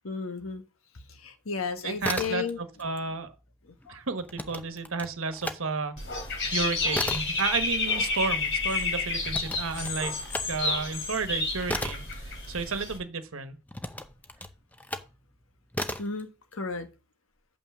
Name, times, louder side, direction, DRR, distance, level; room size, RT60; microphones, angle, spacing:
voice 1, 0.0-0.6 1.1-2.6 3.9-4.0 16.0-16.9, left 5 dB, 85° left, 1.4 m, -33 dB
voice 2, 1.8-3.3 3.9-6.0 6.5-13.6, right 4 dB, 80° right, 1.2 m, -32 dB
sound 1, 1.9-2.9 3.1-5.6 6.0-13.1 13.7-15.2 15.7-16.2, left 1 dB, 10° left, 0.6 m, -36 dB
Dog / Bird, 6.0-13.0, left 3 dB, 55° left, 3.3 m, -30 dB
7.0 x 5.8 x 6.1 m
head